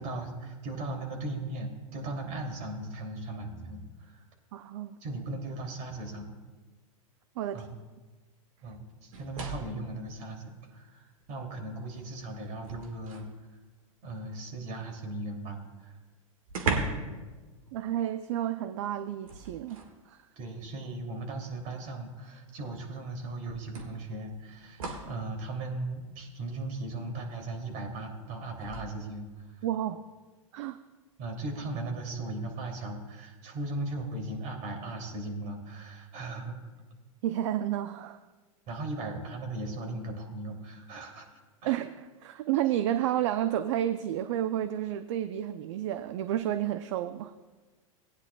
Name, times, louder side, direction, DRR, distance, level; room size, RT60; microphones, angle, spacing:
voice 1, 0.0-4.2 5.0-6.3 7.5-7.7 8.6-13.2 14.0-16.0 20.4-29.7 31.2-36.6 38.7-41.3 41.6-41.8, right 2 dB, 45° right, 2 dB, 2.8 m, -38 dB
voice 2, 4.5-5.0 7.4-7.7 17.7-19.8 20.1-20.2 29.6-30.0 30.5-30.8 37.2-38.2 41.6-47.3, right 11 dB, 60° right, 10 dB, 0.5 m, -31 dB
sound 1, 9.1-9.9 11.2-11.3 11.8-13.4 15.5-15.6 15.8-15.9 16.5-17.2 17.5-17.7 19.2-20.0 21.1-21.2 22.8-22.9 23.7-25.2 28.6-28.8, right 3 dB, 80° right, 1.7 m, -36 dB
19.0 x 9.7 x 2.3 m, 1.3 s
hypercardioid pair, 100°, 18 cm